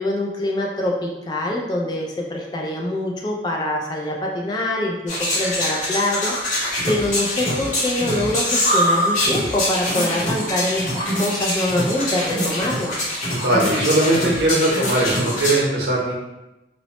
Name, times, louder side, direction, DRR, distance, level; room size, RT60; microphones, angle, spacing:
voice 1, 0.0-6.6 6.9-12.9, left 1 dB, 25° left, -1 dB, 0.3 m, -24 dB
sound 1, 5.1-15.6, left 1 dB, 45° left, 0.8 m, -24 dB
voice 2, 13.4-16.2, right 1 dB, 70° right, -3 dB, 0.8 m, -19 dB
3.0 x 2.0 x 2.8 m, 0.97 s
head